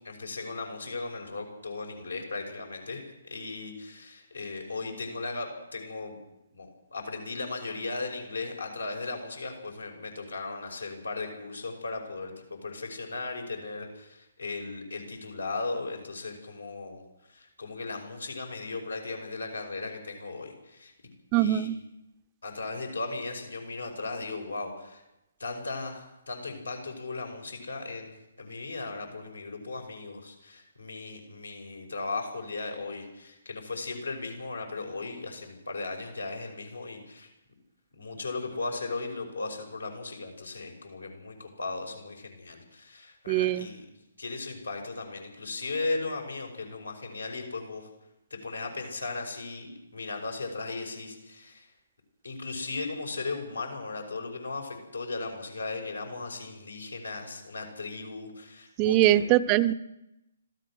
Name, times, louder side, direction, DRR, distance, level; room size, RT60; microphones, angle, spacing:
voice 1, 0.0-6.2 6.5-17.0 17.3-20.9 21.3-21.7 22.4-25.0 25.4-37.3 37.9-43.9 44.2-47.9 48.3-51.7 52.2-59.2, left 3 dB, 80° left, 3 dB, 5.5 m, -37 dB
voice 2, 21.3-21.8 43.3-43.7 58.8-59.7, right 15 dB, 25° right, 14 dB, 0.8 m, -22 dB
26.0 x 16.0 x 6.3 m, 0.92 s
figure-of-eight pair, 135°, 0 cm